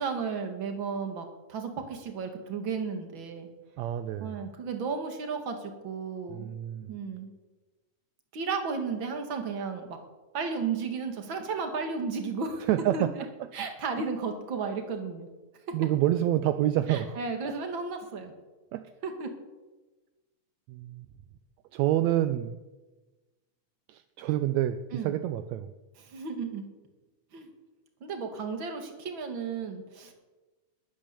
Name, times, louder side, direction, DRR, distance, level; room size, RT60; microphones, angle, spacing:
voice 1, 0.0-3.5 4.2-6.5 6.9-7.3 8.3-10.0 10.3-13.0 13.5-15.3 15.7-15.8 16.9-18.3 19.0-19.3 24.9-25.2 26.0-26.6 27.3-27.5 28.0-30.1, right 5 dB, 45° right, 4 dB, 2.4 m, -34 dB
voice 2, 3.8-4.4 6.3-7.0 12.7-13.1 13.4-13.5 14.0-14.1 15.7-17.2 18.7-18.8 20.7-21.1 21.7-22.6 23.9-25.7, right 13 dB, 80° right, 10 dB, 1.8 m, -28 dB
21.0 x 9.0 x 7.0 m, 1.2 s
omnidirectional pair, 3.5 m